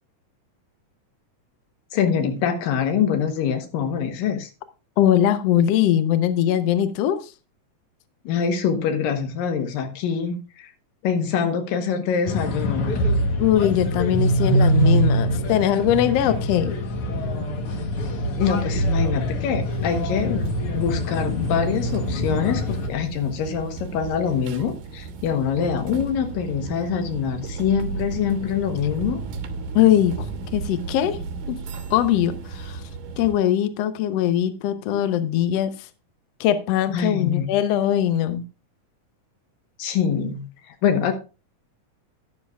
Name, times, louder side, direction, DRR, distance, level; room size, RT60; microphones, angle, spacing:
voice 1, 1.9-4.5 8.3-10.7 11.0-13.1 18.4-29.2 36.9-37.5 39.8-41.1, left 7 dB, 90° left, 6 dB, 2.8 m, -24 dB
voice 2, 5.0-7.3 13.4-16.7 29.7-31.2 31.5-31.6 31.9-32.8 33.2-35.7 36.4-38.4, left 11 dB, 70° left, 10 dB, 1.6 m, -21 dB
sound 1, 12.2-22.9, equal, 55° left, 1.8 m, -24 dB
sound 2, 19.7-33.3, right 4 dB, 70° right, 2.3 m, -34 dB
12.0 x 11.0 x 2.4 m, 0.32 s
omnidirectional pair, 3.9 m